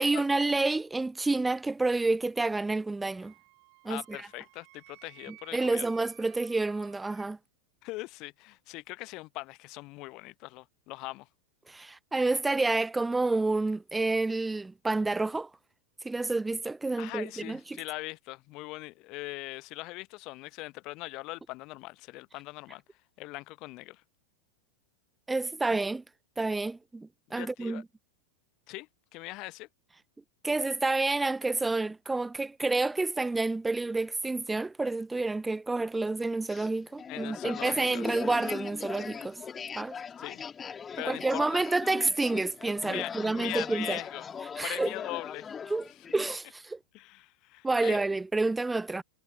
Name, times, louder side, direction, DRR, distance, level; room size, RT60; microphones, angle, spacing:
voice 1, 0.0-3.3 3.8-4.3 5.5-7.4 11.7-15.5 16.0-17.8 25.3-26.0 26.4-27.8 30.4-39.4 39.8-40.0 41.0-44.0 44.6-44.9 45.7-45.8 46.1-46.8 47.6-49.0, right 3 dB, 10° right, 0.5 m, -29 dB
Wind instrument woodwind instrument, 3.1-7.3, right 37 dB, 45° right, 7.5 m, -57 dB
voice 2, 3.9-5.9 7.8-11.3 17.0-22.8 23.2-24.0 27.4-27.8 28.7-29.7 37.1-38.1 40.2-40.5 41.0-41.6 42.8-44.3 44.6-45.5 46.9-48.0, left 22 dB, 40° left, 1.0 m, -41 dB
sound 1, 36.5-46.3, left 6 dB, 20° left, 2.9 m, -40 dB
figure-of-eight pair, 90°, 0 cm